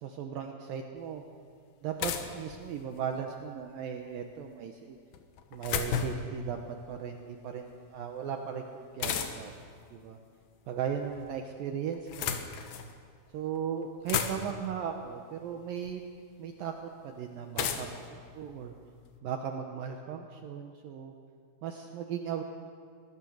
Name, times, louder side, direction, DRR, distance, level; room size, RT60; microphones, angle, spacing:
voice 1, 0.0-1.2 1.8-5.0 5.5-6.6 6.9-9.5 9.9-10.2 10.7-12.4 13.3-16.0 16.4-18.7 19.2-21.1 21.6-22.4, right 8 dB, 70° right, 4 dB, 2.5 m, -37 dB
sound 1, 1.0-1.1 2.0-3.1 5.1-6.4 9.0-9.6 10.8-11.4 11.9-12.9 13.6-13.7 13.8-14.7 15.9-16.0 17.6-19.1, left 8 dB, 70° left, 3.0 m, -34 dB
24.0 x 20.0 x 6.4 m, 2.1 s
omnidirectional pair, 4.7 m